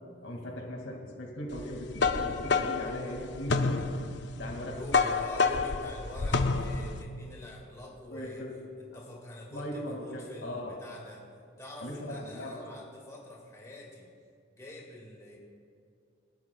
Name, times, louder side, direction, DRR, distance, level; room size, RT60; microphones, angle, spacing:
voice 1, 0.2-3.7 4.4-4.8 8.1-8.5 9.5-10.8 11.8-12.7, left 1 dB, 75° left, 1 dB, 2.3 m, -38 dB
sound 1, 1.6-7.0, left 4 dB, 60° left, 0.6 m, -29 dB
voice 2, 4.7-8.4 8.8-11.3 11.6-14.1 14.5-15.4, left 1 dB, 15° left, -3 dB, 2.0 m, -45 dB
25.5 x 12.5 x 2.4 m, 2.4 s
head